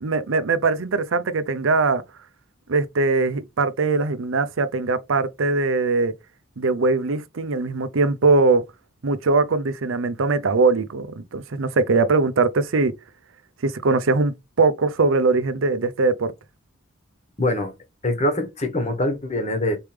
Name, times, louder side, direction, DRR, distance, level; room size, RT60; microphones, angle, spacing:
voice 1, 0.0-2.0 2.7-6.1 6.6-8.6 9.0-12.9 13.6-16.3, right 3 dB, 70° right, 0.6 m, -21 dB
voice 2, 17.4-17.7 18.0-19.8, left 1 dB, 35° left, 1.2 m, -23 dB
4.4 x 3.3 x 3.4 m
head